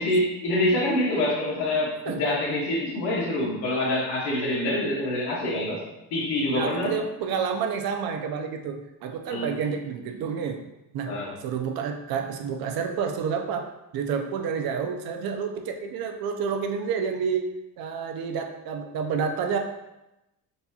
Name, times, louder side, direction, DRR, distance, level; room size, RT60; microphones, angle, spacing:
voice 1, 0.0-5.8 6.1-7.0 9.3-9.5 11.1-11.3, left 1 dB, 90° left, -3 dB, 1.2 m, -26 dB
voice 2, 6.5-10.6 10.9-11.1 11.4-19.6, right 6 dB, 65° right, 4 dB, 0.5 m, -29 dB
4.0 x 2.8 x 2.3 m, 0.94 s
cardioid pair, 110°, 40 cm